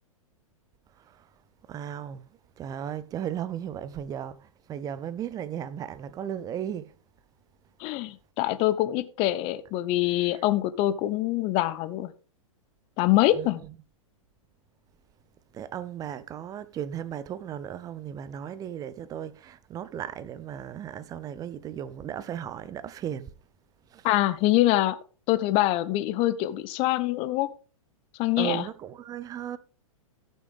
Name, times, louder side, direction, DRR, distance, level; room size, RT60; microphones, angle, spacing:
voice 1, 1.7-2.2 2.6-6.9 10.2-10.4 13.3-13.7 15.5-23.3 23.9-24.1 28.4-29.6, right 10 dB, 20° right, 0.6 m, -36 dB
voice 2, 7.8-12.1 13.0-13.6 24.0-25.0 25.3-27.5 28.2-28.6, left 15 dB, 35° left, 0.8 m, -24 dB
14.5 x 6.3 x 3.5 m
figure-of-eight pair, 110°, 18 cm